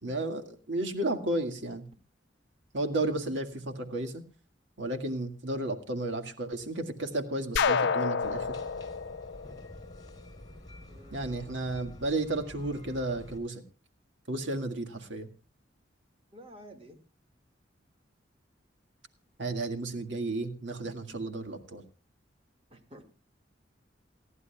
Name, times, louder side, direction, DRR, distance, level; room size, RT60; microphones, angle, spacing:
voice 1, 0.0-1.8 2.7-4.2 4.8-8.6 11.1-13.6 14.3-15.3 19.4-21.8, right 2 dB, 85° right, 5 dB, 1.9 m, -33 dB
sound 1, 7.6-10.4, left 5 dB, 70° left, 0.5 m, -29 dB
sound 2, 8.2-13.4, left 1 dB, 25° left, 3.6 m, -49 dB
voice 2, 10.9-11.6 16.3-17.0 22.7-23.0, equal, 30° right, 5 dB, 2.1 m, -51 dB
29.0 x 11.0 x 2.3 m, 0.33 s
head